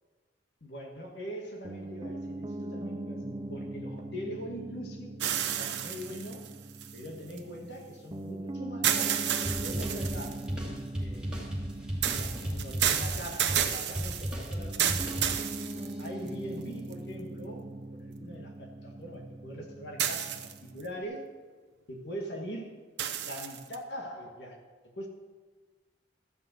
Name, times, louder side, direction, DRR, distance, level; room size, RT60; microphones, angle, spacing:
voice 1, 0.6-5.1 5.6-6.5 6.9-9.2 9.5-11.5 12.0-15.2 15.7-20.4 20.7-21.2 21.9-22.7 23.2-24.6 25.0-25.1, equal, 70° left, 1 dB, 1.9 m, -42 dB
Piano, 1.6-21.0, right 1 dB, 25° right, 0.5 m, -41 dB
sound 1, 5.2-7.4 8.8-10.5 12.0-16.3 16.9-17.0 20.0-20.8 23.0-23.8, right 9 dB, 80° right, 0.8 m, -31 dB
sound 2, 9.4-15.8, equal, 5° right, 2.2 m, -35 dB
13.0 x 5.6 x 7.9 m, 1.4 s
head